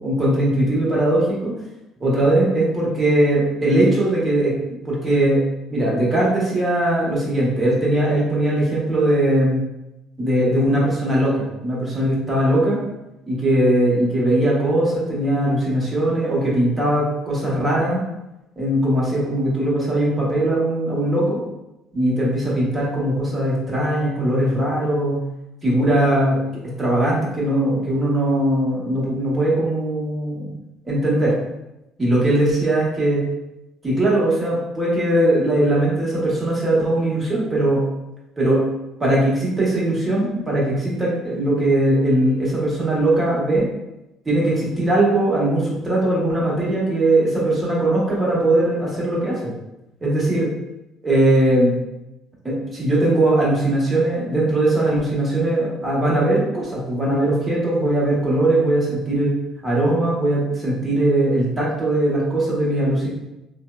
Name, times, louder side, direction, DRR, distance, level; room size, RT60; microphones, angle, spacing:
voice 1, 0.0-1.5 2.0-4.5 4.8-5.4 5.7-9.6 10.2-12.8 13.3-18.0 18.6-21.4 21.9-25.2 25.6-30.5 30.8-31.3 32.0-33.2 33.8-37.8 38.4-38.7 39.0-43.7 44.2-49.5 50.0-50.5 51.0-51.8 52.4-59.3 59.6-63.1, right 1 dB, 20° right, -5 dB, 1.0 m, -20 dB
3.1 x 2.0 x 2.3 m, 0.93 s
cardioid pair, 115°, 0 cm